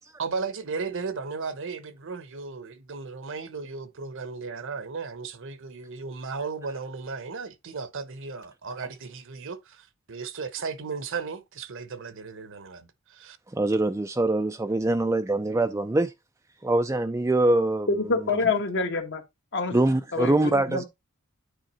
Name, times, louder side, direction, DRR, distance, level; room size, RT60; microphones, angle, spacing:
voice 1, 0.2-13.4, right 4 dB, 60° right, 0.9 m, -35 dB
voice 2, 13.5-16.1 16.6-17.9 19.7-20.8, right 2 dB, 15° right, 0.4 m, -23 dB
voice 3, 17.9-19.2 19.5-19.8 20.1-20.8, left 3 dB, 55° left, 1.3 m, -26 dB
9.0 x 3.8 x 4.0 m
head